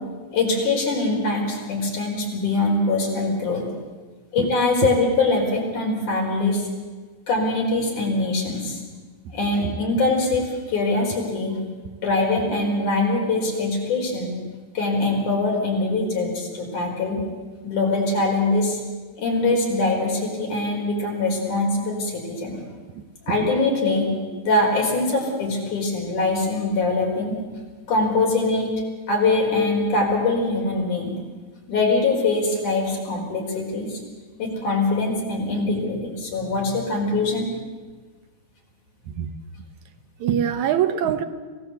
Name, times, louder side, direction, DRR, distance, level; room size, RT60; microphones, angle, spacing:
voice 1, 0.3-3.6 4.3-6.7 7.3-8.8 9.3-11.6 12.0-14.4 14.7-17.2 17.6-18.8 19.2-22.6 23.3-24.1 24.4-27.4 27.9-28.7 29.1-31.2 31.7-34.0 34.4-37.5, left 2 dB, 85° left, -1 dB, 6.3 m, -23 dB
voice 2, 40.2-41.3, right 9 dB, 75° right, 9 dB, 2.5 m, -24 dB
26.0 x 17.0 x 8.2 m, 1.4 s
omnidirectional pair, 3.4 m